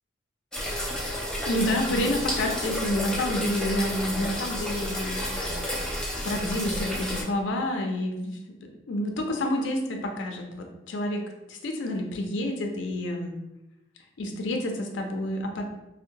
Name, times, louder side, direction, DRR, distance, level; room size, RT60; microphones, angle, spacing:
sound 1, 0.5-7.2, equal, 5° left, 0.4 m, -31 dB
voice 1, 1.5-5.9 6.2-8.4 8.9-11.2 11.5-13.3 14.2-15.7, left 1 dB, 80° left, 3 dB, 0.4 m, -29 dB
2.6 x 2.1 x 2.7 m, 0.93 s
head